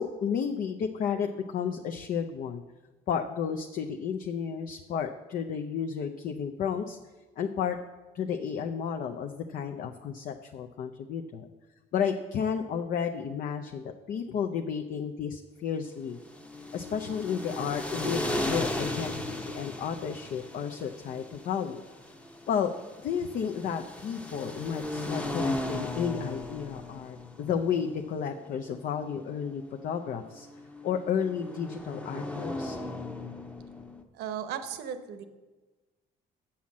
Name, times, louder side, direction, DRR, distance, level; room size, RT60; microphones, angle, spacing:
voice 1, 0.0-2.6 3.1-7.0 7.4-7.8 8.1-11.5 11.9-16.2 16.7-21.8 22.5-22.7 23.0-30.5 30.8-32.8, left 7 dB, 55° left, 5 dB, 0.5 m, -32 dB
sound 1, 16.1-34.0, left 1 dB, 5° left, 0.8 m, -37 dB
voice 2, 34.1-35.3, right 8 dB, 80° right, 9 dB, 0.9 m, -36 dB
7.5 x 5.7 x 7.2 m, 1.2 s
cardioid pair, 110°, 17 cm